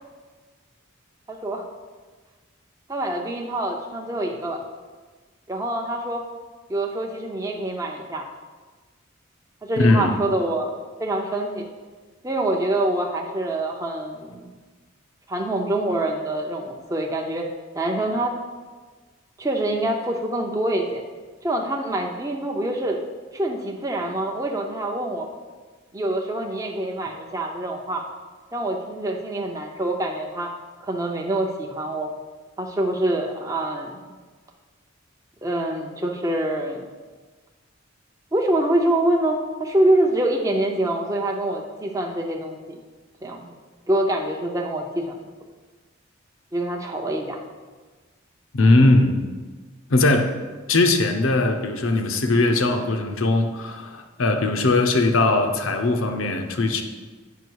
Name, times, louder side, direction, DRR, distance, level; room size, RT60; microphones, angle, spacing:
voice 1, 1.3-1.6 2.9-4.6 5.5-6.2 6.7-8.2 9.6-10.7 11.0-11.7 12.2-14.5 15.3-17.5 17.7-18.3 19.4-21.0 21.4-23.0 23.3-25.3 25.9-28.0 28.5-30.5 30.8-32.1 32.6-33.9 35.4-36.8 38.3-42.8 43.2-43.5 43.9-45.2 46.5-47.4, right 1 dB, 15° right, 1 dB, 0.6 m, -25 dB
voice 2, 9.8-10.2 48.5-49.2 49.9-50.3 50.7-56.8, left 2 dB, 75° left, 6 dB, 0.8 m, -19 dB
8.1 x 5.7 x 4.6 m, 1.4 s
head